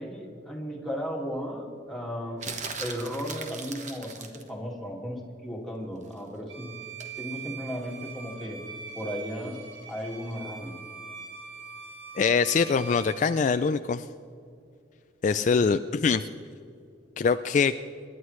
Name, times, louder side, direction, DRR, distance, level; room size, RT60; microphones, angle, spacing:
voice 1, 0.0-2.5 2.8-6.7 7.2-8.6 8.9-10.8 15.3-15.6, equal, ahead, -2 dB, 2.1 m, -35 dB
sound 1, 2.4-4.5 7.0-7.2, right 4 dB, 40° right, 1.2 m, -38 dB
Bowed string instrument, 6.5-13.3, right 6 dB, 75° right, 1.7 m, -42 dB
voice 2, 12.2-14.1 15.2-16.3 17.2-17.7, left 5 dB, 45° left, 10 dB, 0.3 m, -23 dB
27.0 x 11.5 x 3.2 m, 2.4 s
head